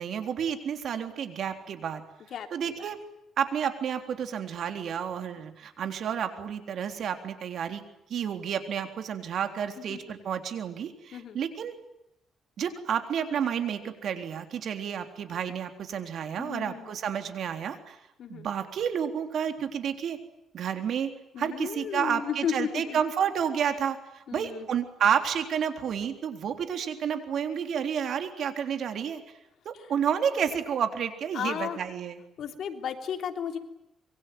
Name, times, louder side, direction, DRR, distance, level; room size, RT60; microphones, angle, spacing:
voice 1, 0.0-2.0 2.5-3.0 3.4-7.8 8.1-11.7 12.6-18.0 18.3-20.2 20.5-21.1 21.4-29.2 29.7-32.2, right 8 dB, 60° right, 7 dB, 3.7 m, -30 dB
voice 2, 2.3-2.9 9.8-10.0 11.1-11.4 16.4-16.9 18.2-18.5 21.3-23.0 24.3-24.7 29.7-29.9 31.3-31.8 32.4-33.6, left 8 dB, 65° left, 6 dB, 3.3 m, -34 dB
26.0 x 23.0 x 9.5 m, 0.86 s
cardioid pair, 115°, 0 cm